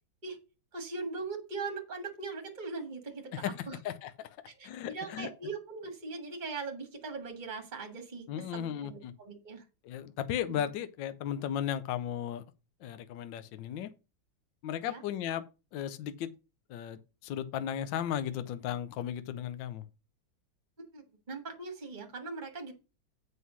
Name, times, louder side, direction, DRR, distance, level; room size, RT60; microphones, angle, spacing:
voice 1, 0.7-3.8 4.5-9.6 10.5-10.7 14.8-15.0 20.9-22.7, right 4 dB, 25° right, 1.7 m, -40 dB
voice 2, 3.3-4.4 4.6-5.3 8.3-9.1 9.8-12.4 12.8-13.9 14.6-15.4 15.7-16.3 16.7-19.8, left 10 dB, 75° left, 1.4 m, -35 dB
7.7 x 5.6 x 6.1 m
omnidirectional pair, 2.2 m